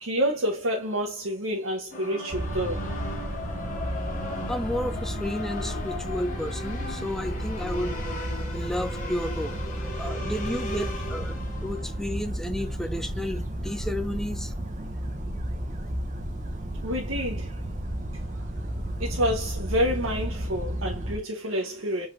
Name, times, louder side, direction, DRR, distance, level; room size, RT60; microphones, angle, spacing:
voice 1, 0.0-2.9 10.0-10.3 16.8-17.6 18.1-18.5 19.0-22.1, equal, 70° right, 0.9 m, -29 dB
sound 1, 1.9-12.0, left 2 dB, 35° left, 1.4 m, -37 dB
sound 2, 2.3-21.2, right 1 dB, 35° right, 0.8 m, -33 dB
voice 2, 4.5-8.0 8.5-9.6 10.0-14.5, left 1 dB, ahead, 0.3 m, -32 dB
5.0 x 3.9 x 2.5 m
head